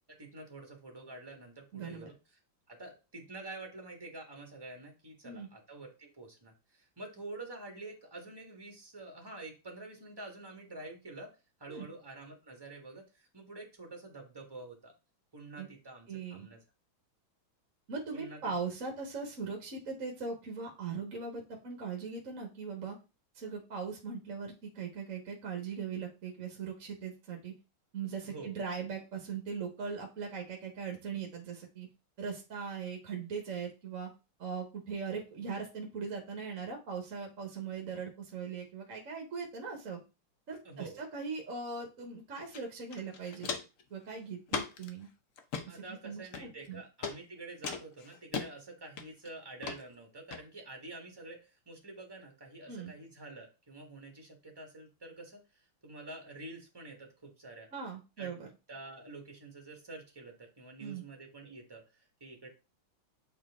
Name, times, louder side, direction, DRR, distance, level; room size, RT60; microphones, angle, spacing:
voice 1, 0.2-2.1 2.7-11.3 11.6-14.9 15.3-16.6 18.1-18.4 28.2-28.5 40.6-41.0 45.6-57.7 58.2-58.3 58.7-62.5, right 2 dB, 10° right, 2 dB, 1.4 m, -48 dB
voice 2, 1.7-2.1 5.2-5.5 11.7-11.9 15.6-15.7 16.1-16.5 17.9-23.0 23.3-27.5 27.9-31.9 32.2-34.1 34.4-40.0 40.5-43.6 43.9-45.1 45.6-46.8 52.7-52.9 57.7-58.5 60.8-61.0, right 5 dB, 45° right, 2 dB, 1.3 m, -40 dB
Walk footsteps, 42.5-42.6 42.9-43.8 44.5-44.9 45.4-45.7 46.3-46.7 47.0-47.2 47.6-48.5 49.0-49.3 49.6-49.8 50.3-50.4, left 5 dB, 70° left, 0.7 m, -37 dB
7.6 x 4.3 x 3.6 m, 0.30 s
omnidirectional pair, 2.4 m